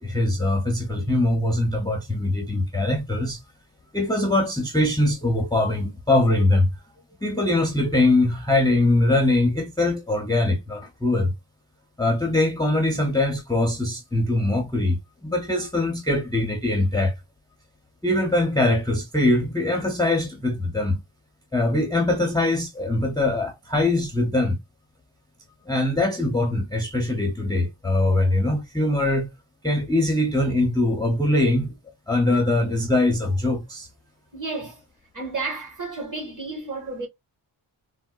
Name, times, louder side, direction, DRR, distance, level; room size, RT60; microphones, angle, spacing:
voice 1, 0.0-3.4 3.9-6.7 7.2-11.3 12.0-17.1 18.0-21.0 21.5-24.6 25.7-29.3 29.6-31.7 32.1-33.9, left 2 dB, 10° left, 0.4 m, -22 dB
voice 2, 34.3-34.8 35.1-37.1, right 3 dB, 40° right, 1.4 m, -32 dB
3.5 x 2.2 x 2.2 m
wide cardioid pair, 150°, 47 cm